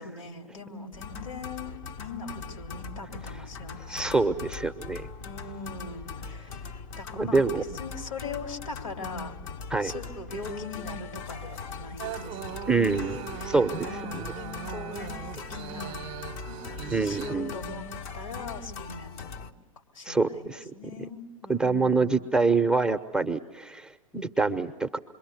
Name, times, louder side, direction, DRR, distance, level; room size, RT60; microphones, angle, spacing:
voice 1, 0.0-4.3 5.2-9.3 9.8-13.6 13.9-16.0 16.4-17.9 18.1-19.5 19.9-20.5 20.7-22.2, left 3 dB, 75° left, 2 dB, 3.2 m, -41 dB
sound 1, 0.9-19.5, left 5 dB, 45° left, 1.0 m, -40 dB
voice 2, 3.9-5.1 7.2-7.6 9.7-9.9 12.7-13.2 13.5-14.3 16.9-17.5 20.1-20.7 21.5-25.0, right 3 dB, 5° right, 6 dB, 0.8 m, -26 dB
sound 2, 12.0-17.4, right 12 dB, 35° right, 0.8 m, -40 dB
27.0 x 23.0 x 8.0 m, 1.2 s
hypercardioid pair, 100°, 17 cm